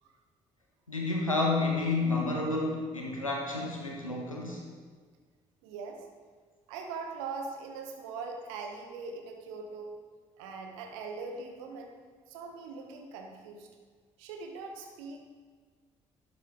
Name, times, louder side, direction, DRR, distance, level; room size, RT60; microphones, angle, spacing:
voice 1, 0.9-4.6, left 3 dB, 90° left, 0 dB, 1.1 m, -30 dB
voice 2, 5.6-6.0 6.7-10.0 10.4-11.9 12.3-13.7 14.2-15.2, right 4 dB, 70° right, 3 dB, 1.1 m, -41 dB
12.0 x 9.0 x 3.5 m, 1.6 s
figure-of-eight pair, 45°, 17 cm